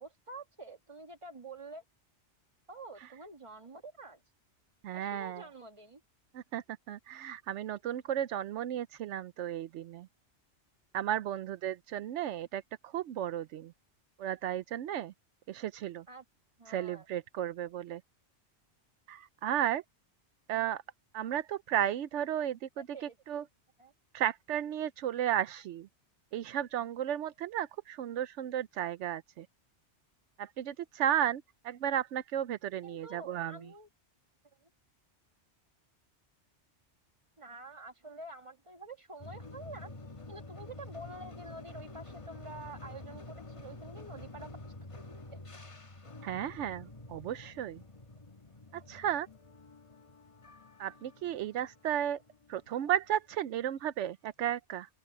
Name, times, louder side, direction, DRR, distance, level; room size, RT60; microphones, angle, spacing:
voice 1, 0.0-1.8 2.7-4.2 4.9-6.0 16.1-16.2 16.6-17.1 20.5-20.7 22.5-23.2 23.8-23.9 32.8-33.9 34.6-34.7 37.4-39.9 40.3-44.7 45.3-45.4 52.8-52.9, right 2 dB, 25° right, 1.7 m, -48 dB
voice 2, 4.8-5.5 6.3-10.1 10.9-13.7 14.2-15.1 15.5-16.0 16.7-18.0 19.1-19.8 20.5-20.8 21.1-23.4 24.1-25.9 26.3-29.5 30.4-33.6 46.2-47.8 48.7-49.3 50.8-52.2 52.5-54.9, right 10 dB, 80° right, 0.9 m, -34 dB
sound 1, 39.2-53.3, left 2 dB, 30° left, 1.3 m, -49 dB
open air
omnidirectional pair, 1.2 m